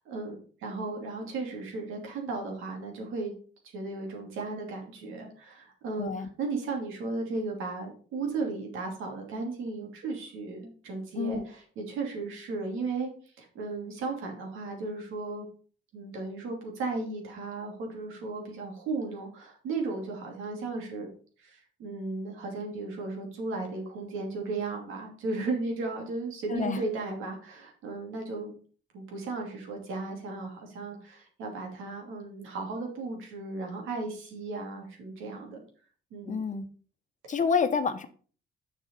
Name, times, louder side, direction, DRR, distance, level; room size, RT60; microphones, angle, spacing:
voice 1, 0.0-3.3 3.6-13.1 13.4-15.4 15.9-21.1 21.4-28.5 28.9-35.6 36.1-36.4, right 3 dB, 85° right, 1 dB, 2.7 m, -35 dB
voice 2, 6.0-6.3 11.1-11.4 26.5-26.8 36.3-36.6 37.3-38.1, left 5 dB, 40° left, 9 dB, 1.1 m, -28 dB
7.2 x 5.4 x 5.3 m, 0.43 s
cardioid pair, 90°, 20 cm